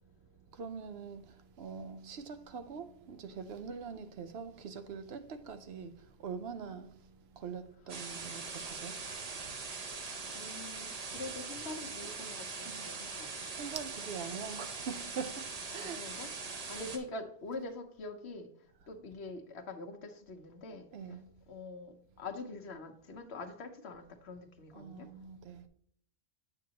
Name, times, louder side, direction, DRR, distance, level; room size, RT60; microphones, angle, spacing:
voice 1, 0.5-9.8 11.2-11.3 12.0-12.2 12.6-12.9 13.5-16.1 16.4-16.8 20.9-21.3 24.7-25.7, right 6 dB, 75° right, 0.9 m, -44 dB
sound 1, 7.9-17.0, right 4 dB, 40° right, 0.8 m, -42 dB
voice 2, 10.3-13.5 15.8-21.2 21.5-25.1, left 3 dB, 85° left, 1.2 m, -45 dB
7.6 x 7.4 x 2.9 m
omnidirectional pair, 1.1 m